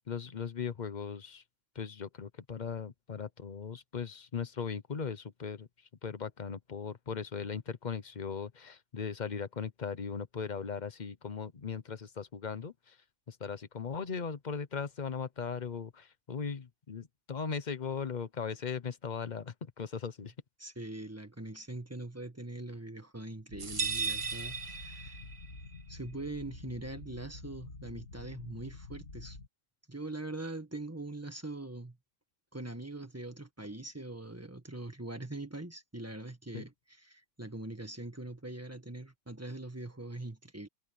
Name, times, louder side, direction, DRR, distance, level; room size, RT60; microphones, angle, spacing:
voice 1, 0.1-1.4 1.7-20.3 36.5-36.6, left 6 dB, 40° left, 1.0 m, -38 dB
voice 2, 20.6-25.2 25.9-29.4 29.9-32.0 32.5-36.7 37.1-40.7, right 2 dB, 10° right, 1.6 m, -42 dB
sound 1, 23.5-29.5, left 3 dB, 80° left, 3.0 m, -48 dB
sound 2, 23.6-25.5, right 5 dB, 30° right, 0.7 m, -35 dB
omnidirectional pair, 1.3 m